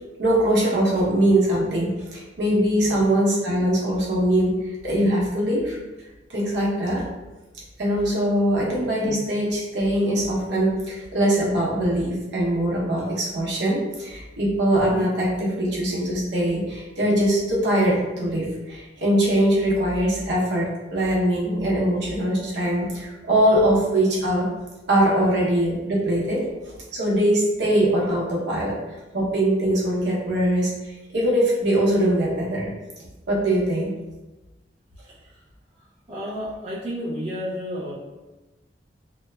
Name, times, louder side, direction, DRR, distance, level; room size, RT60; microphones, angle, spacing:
voice 1, 0.2-5.8 6.3-7.0 7.8-24.5 24.9-28.8 29.1-32.7 33.3-33.9, right 1 dB, 70° right, -5 dB, 0.7 m, -22 dB
voice 2, 35.0-35.4 35.7-37.9, equal, 30° right, -7 dB, 0.4 m, -32 dB
2.8 x 2.0 x 2.2 m, 1.1 s
head